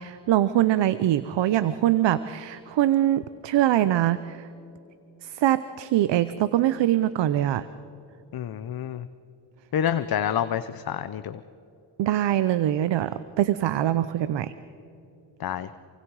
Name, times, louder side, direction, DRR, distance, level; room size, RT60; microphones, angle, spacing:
voice 1, 0.0-4.4 5.2-7.6 12.0-14.5, right 12 dB, 75° right, 14 dB, 0.8 m, -23 dB
voice 2, 8.3-9.0 9.7-11.4 15.4-15.7, left 9 dB, 55° left, 12 dB, 0.8 m, -28 dB
27.5 x 24.5 x 4.9 m, 2.8 s
cardioid pair, 80°, 44 cm